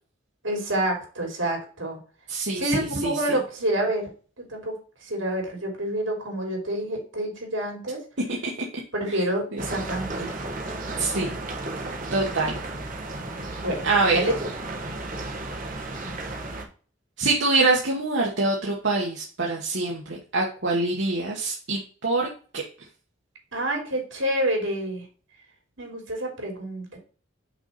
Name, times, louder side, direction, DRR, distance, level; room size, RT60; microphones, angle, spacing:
voice 1, 0.4-2.0 2.5-4.1 4.4-4.7 5.0-8.0 8.9-10.4 13.6-14.5 23.5-25.0 25.8-27.0, right 1 dB, 80° right, 2 dB, 3.2 m, -28 dB
voice 2, 2.3-3.1 9.5-9.6 11.0-11.3 12.1-12.5 13.8-14.2 17.2-22.3, right 3 dB, 65° right, -2 dB, 1.4 m, -24 dB
sound 1, 9.6-16.7, right 2 dB, 45° right, 1.4 m, -33 dB
5.9 x 4.0 x 5.7 m, 0.39 s
head